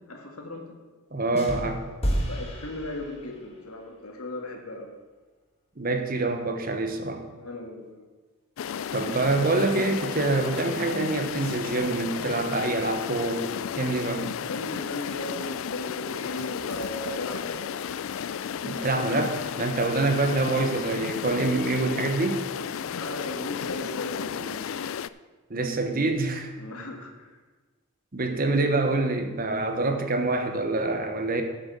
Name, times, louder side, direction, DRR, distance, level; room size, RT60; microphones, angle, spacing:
voice 1, 0.1-0.8 2.3-4.9 7.4-8.1 14.5-17.7 22.9-24.8 26.6-27.4, left 2 dB, 85° left, 2 dB, 1.9 m, -37 dB
voice 2, 1.1-1.8 5.8-7.2 8.9-13.5 13.8-14.3 18.6-22.5 25.5-26.5 28.1-31.4, right 2 dB, 40° right, 6 dB, 1.1 m, -26 dB
sound 1, 1.3-3.5, equal, 25° left, 1.6 m, -31 dB
sound 2, 8.6-25.1, left 8 dB, 65° left, 0.3 m, -33 dB
sound 3, 9.7-12.4 13.5-13.6 16.3-17.0 17.3-18.2, equal, 65° right, 3.9 m, -43 dB
8.3 x 7.9 x 6.8 m, 1.3 s
head